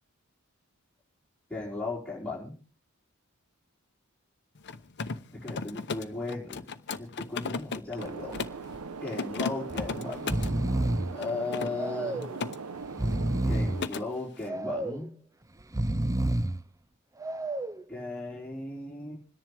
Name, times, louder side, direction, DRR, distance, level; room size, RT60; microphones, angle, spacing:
voice 1, 1.5-2.5 5.4-6.6 7.0-8.3 9.0-10.4 11.1-12.2 13.5-15.1 17.9-19.2, left 3 dB, 5° left, -8 dB, 5.1 m, -36 dB
Mechanisms, 4.6-8.7 9.1-10.6 11.2-12.6 12.9-13.2 13.5-14.1, left 4 dB, 55° left, 0.8 m, -36 dB
sound 1, 8.0-13.9, right 4 dB, 80° right, 0.9 m, -40 dB
Breathing, 8.1-8.4 8.7-8.8 9.7-9.9 10.1-11.2 11.7-12.4 12.8-13.9 14.4-15.1 15.6-16.6 17.2-17.8, right 1 dB, 15° right, 0.6 m, -29 dB
27.0 x 10.5 x 3.4 m, 0.38 s
head